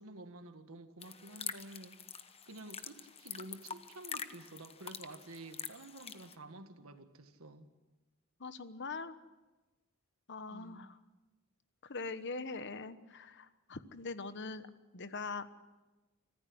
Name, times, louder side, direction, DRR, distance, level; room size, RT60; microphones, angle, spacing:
voice 1, 0.0-7.7 10.5-10.9, right 2 dB, 75° right, 8 dB, 1.7 m, -51 dB
sound 1, 1.0-6.4, left 7 dB, 30° left, 1.0 m, -46 dB
voice 2, 8.4-9.2 10.3-11.0 11.8-14.7 14.9-15.5, left 4 dB, 55° left, 12 dB, 1.1 m, -42 dB
25.0 x 15.0 x 7.9 m, 1.2 s
head